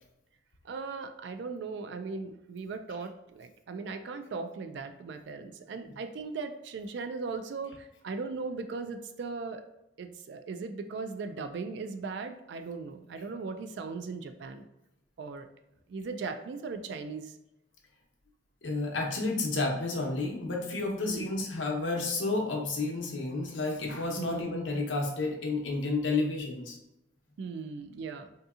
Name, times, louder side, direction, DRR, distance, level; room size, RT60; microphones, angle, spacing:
voice 1, 0.6-9.6 10.0-14.7 15.2-15.5 15.9-17.4 21.1-21.3 24.2-24.6 27.4-28.3, right 4 dB, 65° right, 8 dB, 0.3 m, -38 dB
voice 2, 18.6-26.8, left 3 dB, 80° left, 0 dB, 0.8 m, -31 dB
3.6 x 2.8 x 2.4 m, 0.91 s
head